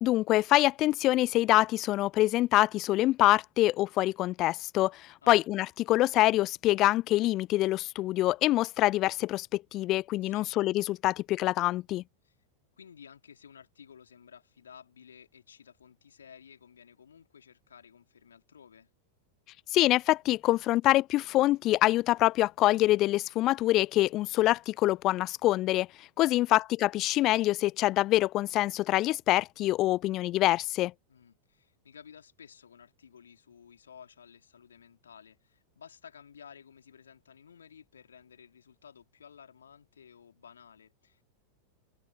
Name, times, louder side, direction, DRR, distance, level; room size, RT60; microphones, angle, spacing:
voice 1, 0.0-12.0 19.7-25.9 26.2-30.9, left 16 dB, 35° left, 0.3 m, -25 dB
voice 2, 10.2-10.5 12.2-12.4 12.8-18.9 26.2-26.6 31.1-41.2, left 7 dB, 70° left, 3.5 m, -54 dB
figure-of-eight pair, 90°, 0 cm